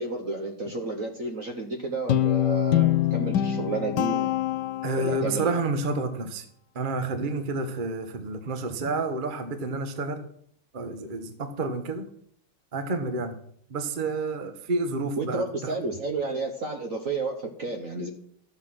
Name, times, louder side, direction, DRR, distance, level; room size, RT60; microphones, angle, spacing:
voice 1, 0.0-4.3 5.0-5.5 15.2-18.1, right 3 dB, 50° right, 4 dB, 1.1 m, -31 dB
Guitar, 2.1-5.4, left 12 dB, 70° left, 1.1 m, -24 dB
voice 2, 4.8-6.4 6.7-10.2 10.7-12.1 12.7-13.3 13.7-15.7, right 3 dB, 35° right, 7 dB, 0.9 m, -29 dB
13.0 x 7.5 x 6.0 m, 0.65 s
omnidirectional pair, 2.4 m